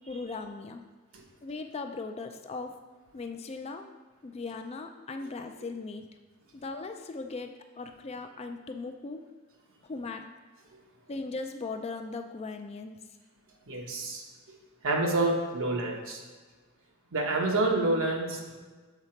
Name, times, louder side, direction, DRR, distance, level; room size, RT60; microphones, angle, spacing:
voice 1, 0.1-0.8 1.4-2.8 3.1-3.9 4.2-6.1 6.5-9.2 9.8-10.3 11.1-13.0, left 3 dB, 30° left, 6 dB, 0.4 m, -38 dB
voice 2, 13.7-14.2 14.8-16.2 17.1-18.6, right 2 dB, 65° right, 0 dB, 1.1 m, -28 dB
7.1 x 3.8 x 4.5 m, 1.3 s
head